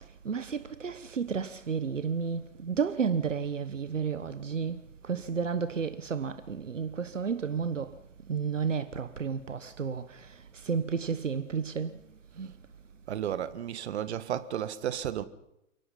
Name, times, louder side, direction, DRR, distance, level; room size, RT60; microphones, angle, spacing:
voice 1, 0.0-8.0 8.3-12.0 12.3-12.5, right 6 dB, 80° right, 1.3 m, -32 dB
voice 2, 13.1-15.2, right 10 dB, 60° right, 1.8 m, -33 dB
29.0 x 18.0 x 5.7 m
figure-of-eight pair, 105°, 37 cm